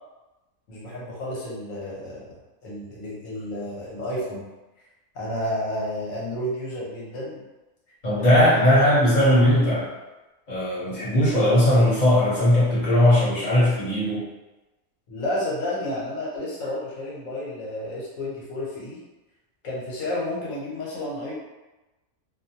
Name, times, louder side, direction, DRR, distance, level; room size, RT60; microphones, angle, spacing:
voice 1, 0.7-2.3 2.6-4.4 5.1-7.4 8.2-8.7 15.1-19.0 19.6-21.3, left 1 dB, 70° left, -5 dB, 1.3 m, -31 dB
voice 2, 8.0-9.9 10.5-14.2, left 1 dB, 35° left, -9 dB, 0.9 m, -19 dB
2.6 x 2.2 x 2.8 m, 1.1 s
omnidirectional pair, 1.4 m